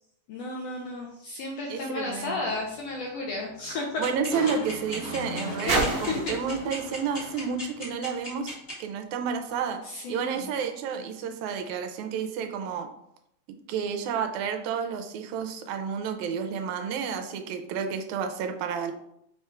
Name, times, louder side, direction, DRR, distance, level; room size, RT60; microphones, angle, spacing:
voice 1, 0.3-4.1 5.7-6.4 9.8-10.5, left 2 dB, 75° left, -1 dB, 1.5 m, -33 dB
voice 2, 1.7-2.5 4.0-9.8 10.1-12.9 13.7-18.9, right 6 dB, 80° right, 6 dB, 1.9 m, -31 dB
sound 1, 2.1-8.7 9.5-9.6, right 2 dB, 55° right, 1.3 m, -35 dB
sound 2, 4.0-8.7, left 1 dB, 45° left, 0.7 m, -36 dB
Crushing, 4.3-7.7 8.1-8.2, right 1 dB, 20° right, 0.4 m, -41 dB
5.2 x 2.3 x 4.3 m, 0.77 s
omnidirectional pair, 3.5 m